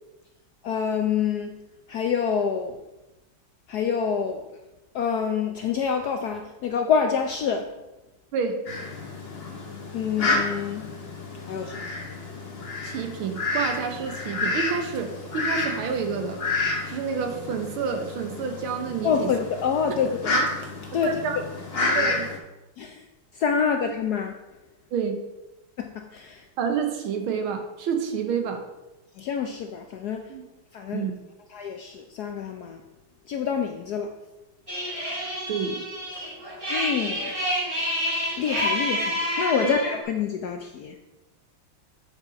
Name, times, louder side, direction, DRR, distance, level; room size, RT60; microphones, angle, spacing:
voice 1, 0.6-1.5 1.9-2.8 3.7-4.4 4.9-7.7 9.9-10.9 11.5-11.8 19.0-20.2 20.9-21.1 21.9-22.1 22.8-23.0 23.4-24.3 25.8-26.4 29.2-30.2 30.7-31.1 31.5-32.8 33.3-34.1 36.7-37.3 38.4-40.9, left 6 dB, 70° left, 5 dB, 0.9 m, -26 dB
Fowl, 8.7-22.4, left 2 dB, 35° left, 1.3 m, -30 dB
voice 2, 12.8-16.4 16.9-19.3 19.9-20.0 20.9-21.4 21.9-22.3 24.9-25.2 26.6-28.6 30.3-30.4 30.9-31.1 35.5-35.8 39.6-39.8, right 6 dB, 80° right, 6 dB, 1.9 m, -29 dB
sound 1, 34.7-40.0, equal, 15° right, 2.1 m, -28 dB
9.0 x 5.7 x 5.1 m, 1.0 s
omnidirectional pair, 2.3 m